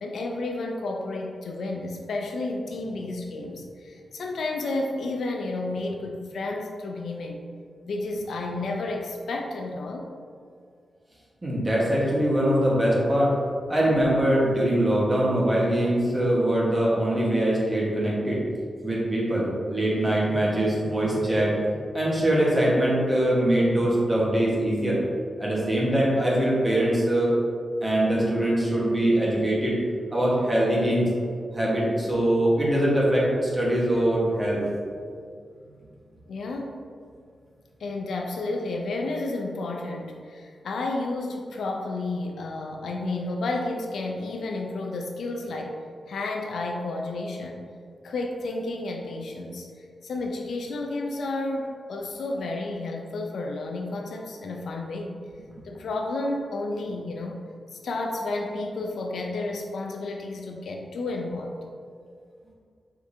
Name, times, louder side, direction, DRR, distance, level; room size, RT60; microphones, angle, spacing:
voice 1, 0.0-7.4 7.9-10.1 36.3-36.7 37.8-45.8 46.1-47.6 48.0-55.2 55.6-57.4 57.7-61.5, left 2 dB, 85° left, 1 dB, 0.4 m, -31 dB
voice 2, 11.4-13.3 13.7-18.4 18.8-25.0 25.4-27.3 27.8-29.8 30.1-31.1 31.5-34.6, right 1 dB, 25° right, -5 dB, 1.3 m, -23 dB
4.9 x 3.5 x 2.7 m, 2.2 s
cardioid pair, 70°, 0 cm